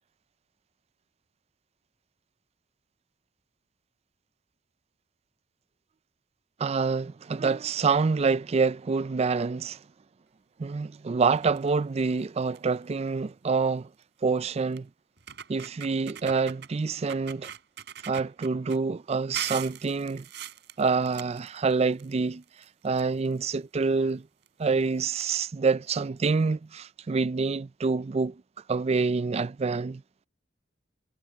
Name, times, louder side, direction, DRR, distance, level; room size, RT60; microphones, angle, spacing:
voice 1, 6.6-9.8 10.6-13.9 14.2-14.9 15.5-17.5 18.1-20.3 20.8-22.4 22.8-24.3 24.6-28.4 28.7-30.0, right 4 dB, 35° right, 0.4 m, -26 dB
sound 1, 11.3-11.7 12.2-12.3 12.5-12.8 14.0-14.1 14.8-14.9 15.2-16.7 17.1-18.8 19.3-22.1 22.4-23.5 24.4-24.5 24.8-24.9 25.2-25.3, right 9 dB, 65° right, 5.1 m, -41 dB
head